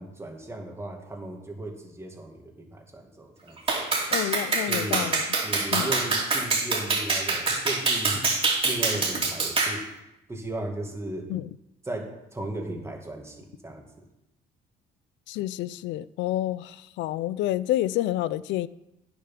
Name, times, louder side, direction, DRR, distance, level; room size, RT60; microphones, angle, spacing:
voice 1, 0.0-3.6 4.6-5.1 5.4-8.3 8.6-9.8 10.3-11.3 11.8-13.8, right 1 dB, 15° right, 2.1 m, -36 dB
Clapping, 3.7-9.8, right 3 dB, 30° right, 2.7 m, -25 dB
voice 2, 4.1-5.2 5.7-5.9 11.3-11.5 15.3-18.7, left 14 dB, 80° left, 0.4 m, -29 dB
9.6 x 7.2 x 5.9 m
cardioid pair, 105°, 19 cm